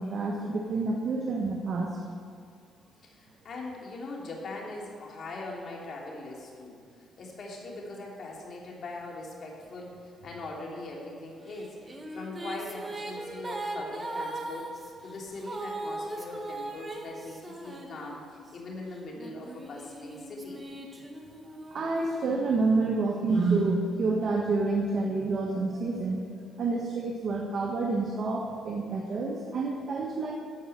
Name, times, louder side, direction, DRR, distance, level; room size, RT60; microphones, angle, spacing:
voice 1, 0.0-2.0 21.7-26.2 26.6-30.3, right 3 dB, 55° right, 0 dB, 1.4 m, -28 dB
voice 2, 3.0-6.8 7.2-11.8 12.1-14.7 15.0-18.2 18.5-20.6, left 2 dB, 55° left, -2 dB, 3.0 m, -41 dB
sound 1, 11.5-18.5 19.2-22.9, right 2 dB, 25° right, 1.6 m, -39 dB
14.0 x 5.6 x 7.8 m, 2.3 s
cardioid pair, 90°, 0 cm